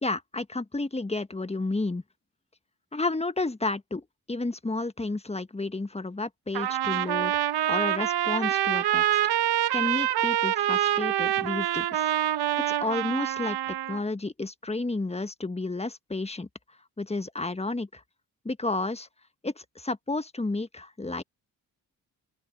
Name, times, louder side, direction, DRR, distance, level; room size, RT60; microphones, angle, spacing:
voice 1, 0.0-2.0 2.9-4.0 4.3-7.4 7.7-9.2 9.7-12.1 12.7-13.6 13.9-16.5 17.0-18.0 18.4-19.1 19.4-21.2, left 2 dB, 15° left, 1.5 m, -31 dB
Trumpet, 6.5-14.0, right 12 dB, 60° right, 1.1 m, -26 dB
open air
hypercardioid pair, 45°, 43 cm